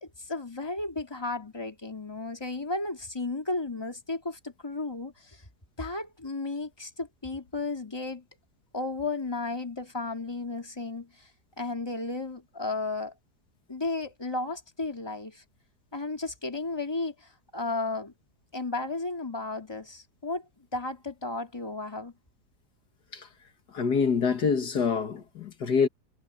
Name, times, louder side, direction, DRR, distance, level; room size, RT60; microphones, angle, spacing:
voice 1, 0.0-5.4 5.8-8.2 8.7-11.3 11.6-13.1 13.7-15.4 15.9-18.1 18.5-20.4 20.7-22.1, left 3 dB, 15° left, 2.8 m, -34 dB
voice 2, 23.7-25.9, left 6 dB, 75° left, 2.3 m, -26 dB
omnidirectional pair, 1.8 m